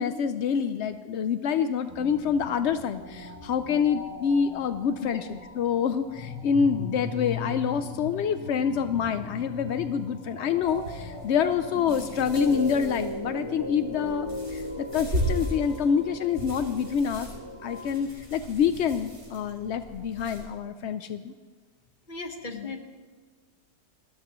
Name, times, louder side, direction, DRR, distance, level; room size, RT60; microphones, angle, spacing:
voice 1, 0.0-17.3 17.6-21.3 22.5-22.7, left 7 dB, 70° left, 10 dB, 0.6 m, -27 dB
sound 1, 1.9-17.9, left 2 dB, 15° right, 4.6 m, -38 dB
sound 2, 10.6-20.4, right 1 dB, 60° right, 6.1 m, -37 dB
voice 2, 22.1-22.8, left 3 dB, 30° left, 5 dB, 1.4 m, -37 dB
29.5 x 13.0 x 3.1 m, 1.4 s
omnidirectional pair, 1.8 m